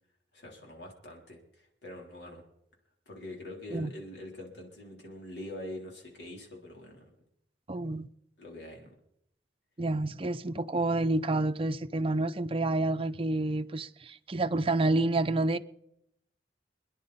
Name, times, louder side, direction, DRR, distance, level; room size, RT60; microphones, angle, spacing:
voice 1, 0.3-2.4 3.1-7.1 8.4-8.9, left 1 dB, 70° left, 3.8 m, -44 dB
voice 2, 7.7-8.1 9.8-15.6, right 2 dB, 30° right, 0.6 m, -29 dB
28.0 x 10.5 x 4.2 m
head